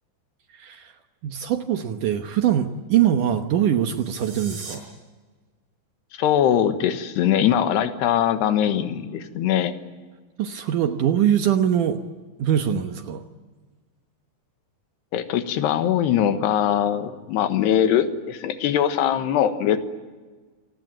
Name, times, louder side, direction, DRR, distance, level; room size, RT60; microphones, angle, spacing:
voice 1, 0.5-0.9 1.2-4.8 10.4-12.0 12.4-13.3, right 10 dB, 65° right, 6 dB, 2.2 m, -22 dB
sound 1, 3.8-4.8, right 4 dB, 45° right, 6.3 m, -40 dB
voice 2, 6.2-9.7 15.1-19.8, left 10 dB, 85° left, 9 dB, 3.5 m, -21 dB
28.0 x 18.5 x 9.2 m, 1.4 s
omnidirectional pair, 4.7 m